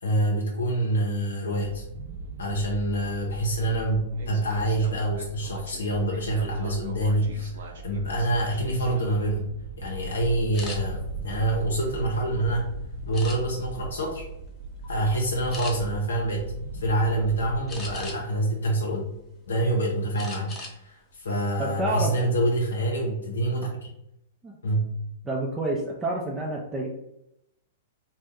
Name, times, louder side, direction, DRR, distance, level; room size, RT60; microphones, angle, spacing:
voice 1, 0.0-1.8 2.4-9.5 9.8-12.7 13.1-14.2 14.9-19.0 19.5-23.9 24.6-24.9, right 1 dB, 85° left, -1 dB, 0.6 m, -26 dB
sound 1, 1.6-18.1, right 3 dB, 70° right, 0.5 m, -39 dB
sound 2, 10.5-10.8 11.4-12.4 13.1-13.7 14.3-14.5 14.8-15.0 15.5-15.7 17.7-18.4 18.9-19.6 20.2-20.8 21.1-21.3 21.7-22.1, left 2 dB, 25° left, 0.7 m, -39 dB
voice 2, 21.6-22.1 24.4-24.6 25.2-26.9, right 1 dB, 15° right, -3 dB, 0.5 m, -28 dB
2.6 x 2.1 x 3.5 m, 0.82 s
hypercardioid pair, 120°, 0 cm